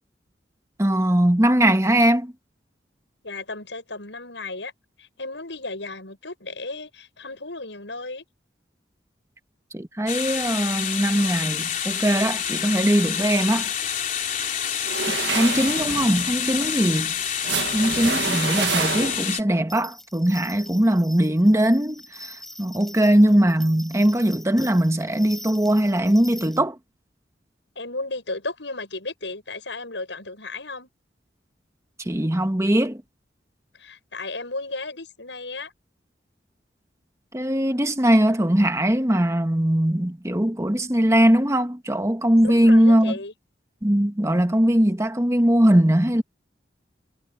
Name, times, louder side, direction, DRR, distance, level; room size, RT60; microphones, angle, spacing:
voice 1, 0.8-2.3 9.7-13.7 15.1-17.1 17.7-26.8 32.0-33.0 37.3-43.1 43.8-46.2, right 1 dB, 15° right, 1.3 m, -20 dB
voice 2, 3.2-4.7 5.0-8.2 15.2-15.6 27.8-30.9 33.8-35.7 42.4-43.3, left 3 dB, 75° left, 7.6 m, -34 dB
sound 1, 10.1-19.4, left 9 dB, 45° left, 3.7 m, -28 dB
sound 2, 14.8-19.5, right 6 dB, 70° right, 1.5 m, -28 dB
sound 3, 19.7-26.6, left 1 dB, ahead, 5.2 m, -43 dB
head